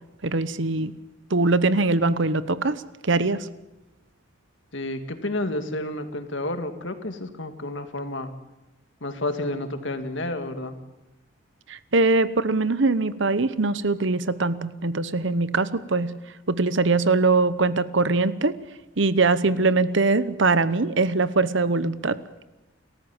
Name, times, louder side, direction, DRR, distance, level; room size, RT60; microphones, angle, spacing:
voice 1, 0.2-0.9 1.3-3.5 11.7-16.1 16.5-18.5 19.0-22.2, right 3 dB, 65° right, 15 dB, 1.0 m, -22 dB
voice 2, 4.7-8.3 9.0-10.8, left 1 dB, 65° left, 7 dB, 2.2 m, -30 dB
29.5 x 14.0 x 7.3 m, 1.0 s
head